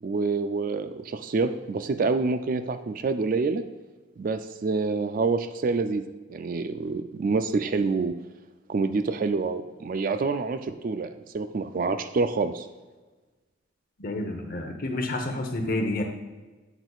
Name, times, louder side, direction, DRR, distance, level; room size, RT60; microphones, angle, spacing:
voice 1, 0.0-3.6 4.2-6.0 6.3-8.2 8.7-12.7, right 4 dB, 40° right, 10 dB, 0.3 m, -27 dB
voice 2, 14.0-16.0, left 1 dB, 45° left, 4 dB, 0.9 m, -29 dB
8.1 x 8.0 x 2.4 m, 1.2 s
head